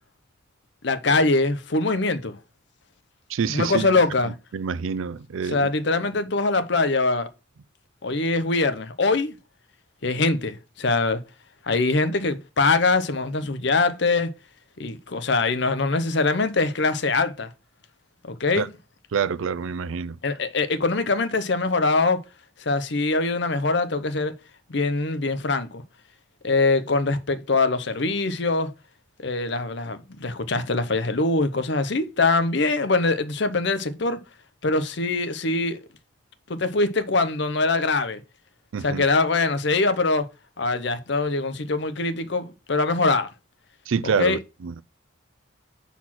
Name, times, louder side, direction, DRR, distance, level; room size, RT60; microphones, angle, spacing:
voice 1, 0.8-2.4 3.5-4.3 5.4-7.3 8.0-9.3 10.0-11.2 11.6-14.3 14.8-17.5 18.3-18.7 20.2-22.2 22.7-24.3 24.7-25.8 26.4-28.7 29.2-34.2 34.6-35.8 36.5-38.2 38.8-40.3 40.6-43.3 44.2-44.4, left 3 dB, 60° left, 0.7 m, -23 dB
voice 2, 3.3-4.0 4.5-5.7 18.6-18.7 19.1-20.2 38.7-39.0 43.9-44.7, right 6 dB, 80° right, 0.4 m, -27 dB
6.1 x 4.2 x 5.8 m
head